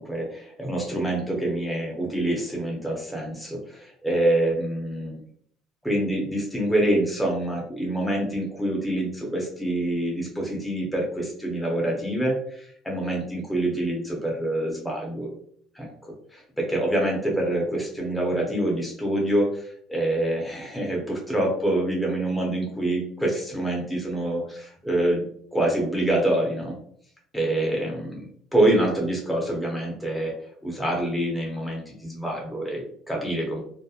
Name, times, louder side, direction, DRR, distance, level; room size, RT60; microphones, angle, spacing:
voice 1, 0.0-5.2 5.8-15.3 15.7-15.9 16.3-25.2 25.5-26.8 27.3-28.2 28.5-30.3 30.6-33.6, right 1 dB, 5° left, -3 dB, 0.7 m, -26 dB
2.8 x 2.1 x 2.3 m, 0.62 s
cardioid pair, 110°, 0 cm